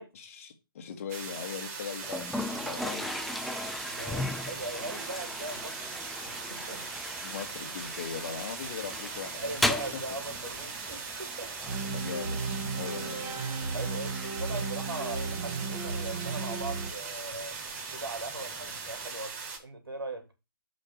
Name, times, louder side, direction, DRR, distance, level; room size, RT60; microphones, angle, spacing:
voice 1, 0.1-3.3 7.2-9.7 11.9-12.4 12.8-13.7 14.2-14.6, left 7 dB, 40° left, 1.8 m, -40 dB
sound 1, 1.1-19.6, right 5 dB, 35° right, 2.9 m, -40 dB
Toilet flush, 2.0-19.1, left 1 dB, ahead, 0.3 m, -39 dB
voice 2, 3.9-6.0 6.3-6.8 9.4-11.7 12.9-13.0 13.7-17.5 17.9-20.3, right 2 dB, 80° right, 3.4 m, -40 dB
sound 2, 11.7-16.9, right 4 dB, 20° right, 1.7 m, -35 dB
6.4 x 5.4 x 6.4 m
figure-of-eight pair, 140°, 12 cm